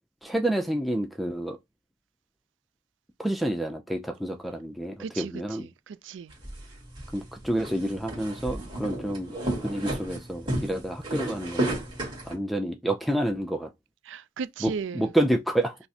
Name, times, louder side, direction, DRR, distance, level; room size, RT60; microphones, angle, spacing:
voice 1, 0.2-1.6 3.2-5.7 7.1-9.3 9.6-11.8 12.2-13.7 14.6-15.8, right 1 dB, ahead, 0.4 m, -28 dB
voice 2, 5.0-5.3 5.6-6.3 14.1-15.1, right 5 dB, 85° right, 0.4 m, -36 dB
sound 1, 6.3-12.3, right 1 dB, 25° right, 1.9 m, -33 dB
5.6 x 2.0 x 2.7 m
head